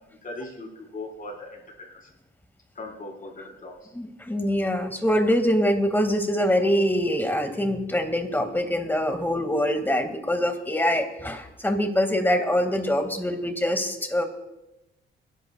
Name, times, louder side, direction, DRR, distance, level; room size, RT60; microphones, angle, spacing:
voice 1, 0.2-0.7 0.9-1.6 1.9-2.0 2.7-3.7, left 2 dB, 45° left, 0 dB, 4.9 m, -38 dB
voice 2, 3.9-14.2, equal, 10° left, 6 dB, 2.1 m, -24 dB
29.0 x 11.5 x 2.4 m, 0.93 s
cardioid pair, 90°, 20 cm